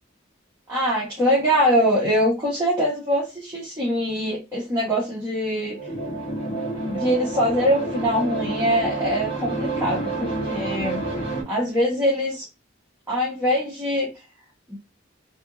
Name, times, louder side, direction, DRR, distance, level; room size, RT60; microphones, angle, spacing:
voice 1, 0.7-5.8 6.5-6.6 6.9-11.0 11.5-12.5 13.1-14.1 14.7-14.8, equal, 15° right, -7 dB, 0.9 m, -23 dB
sound 1, 5.7-11.4, right 2 dB, 30° left, 1.1 m, -29 dB
2.8 x 2.5 x 2.5 m, 0.27 s
head